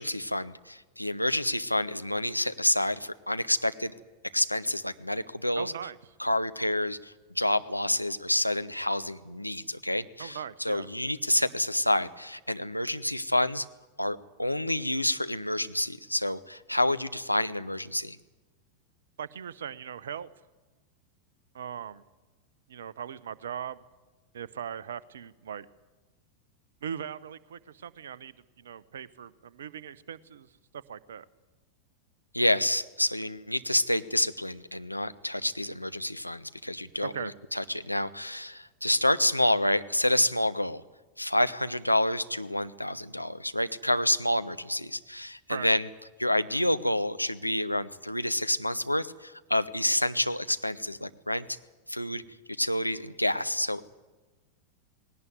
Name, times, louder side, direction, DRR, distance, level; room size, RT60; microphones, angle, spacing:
voice 1, 0.0-3.9 4.3-5.7 6.2-13.6 14.0-18.2 32.3-40.8 41.2-45.9 46.2-51.4 51.9-52.2 52.6-53.9, left 1 dB, 90° left, 11 dB, 0.8 m, -28 dB
voice 2, 5.6-6.0 10.2-10.9 19.2-20.3 21.5-22.0 22.7-23.8 24.3-25.7 26.8-30.5 30.7-31.2 37.0-37.3 45.5-45.7, right 8 dB, 65° right, 17 dB, 0.9 m, -39 dB
19.0 x 18.0 x 9.6 m, 1.2 s
figure-of-eight pair, 90°, 0 cm